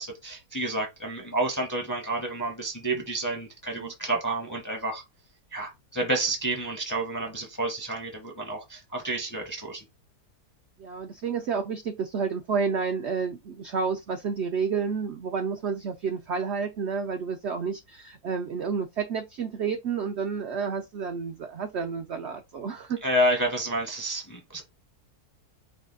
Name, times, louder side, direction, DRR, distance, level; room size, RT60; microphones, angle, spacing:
voice 1, 0.0-5.0 5.5-9.8 23.0-24.6, right 1 dB, 20° left, 0.5 m, -29 dB
voice 2, 10.8-23.0, right 5 dB, 75° right, 0.6 m, -30 dB
4.8 x 2.2 x 3.8 m
omnidirectional pair, 1.7 m